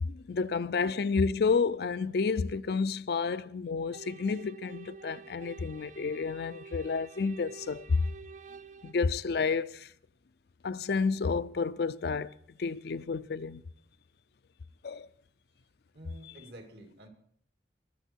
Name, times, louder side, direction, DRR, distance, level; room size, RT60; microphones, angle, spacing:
voice 1, 0.0-8.0 8.8-9.9 10.6-13.6 14.8-15.1, left 4 dB, 60° left, 0.5 m, -30 dB
sound 1, 3.9-8.9, right 5 dB, 45° right, 0.4 m, -49 dB
voice 2, 15.9-17.1, right 1 dB, 70° right, 2.4 m, -49 dB
21.0 x 7.6 x 4.5 m
head